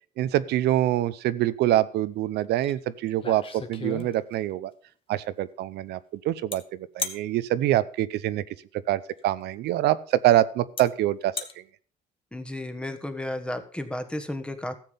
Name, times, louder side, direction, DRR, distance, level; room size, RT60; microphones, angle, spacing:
voice 1, 0.2-4.7 5.1-8.4 8.9-11.3, right 13 dB, 75° right, 15 dB, 0.7 m, -25 dB
sound 1, 2.6-2.7 3.1-4.5 6.5-6.6 7.0-7.2 9.1-9.2 10.1-10.2 10.8-10.9 11.2-11.5, left 4 dB, 30° left, 1.5 m, -34 dB
voice 2, 12.3-14.7, left 1 dB, 5° left, 8 dB, 1.4 m, -33 dB
13.5 x 7.5 x 5.3 m, 0.43 s
cardioid pair, 110°, 17 cm